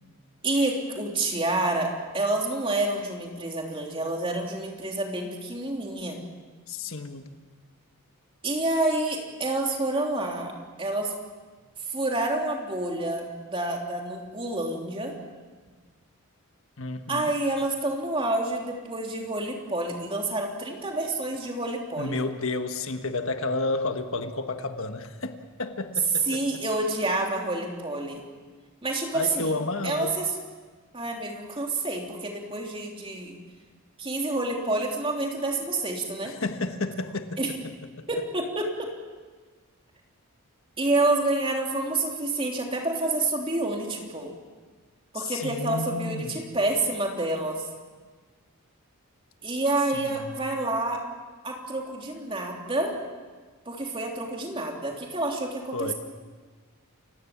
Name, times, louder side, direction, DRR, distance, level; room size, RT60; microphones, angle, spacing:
voice 1, 0.4-6.2 8.4-10.5 10.8-11.1 11.9-15.1 17.1-22.2 26.3-28.2 28.8-29.5 29.8-30.3 30.9-33.4 34.0-36.3 37.4-37.5 38.1-38.9 40.8-44.3 45.1-47.6 49.4-51.0 51.4-53.0 53.6-55.9, right 2 dB, 25° right, 1 dB, 3.3 m, -28 dB
voice 2, 6.7-7.3 16.8-17.3 22.0-26.4 29.1-30.2 36.2-37.4 38.0-38.1 45.1-46.3 49.9-50.3 55.7-55.9, left 3 dB, 65° left, 7 dB, 1.4 m, -31 dB
30.0 x 17.0 x 7.4 m, 1.4 s
head